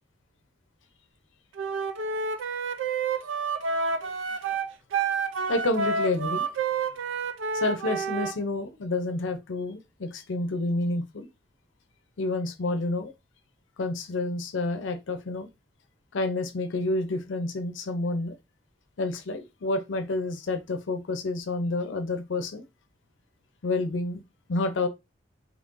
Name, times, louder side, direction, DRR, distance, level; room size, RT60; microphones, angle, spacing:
Wind instrument woodwind instrument, 1.6-8.4, right 4 dB, 85° right, 0.5 m, -29 dB
voice 1, 5.5-6.5 7.5-11.3 12.2-13.1 13.8-15.5 16.1-18.3 19.0-22.7 23.6-24.2 24.5-24.9, left 2 dB, 75° left, 0.6 m, -29 dB
3.0 x 2.5 x 3.6 m
head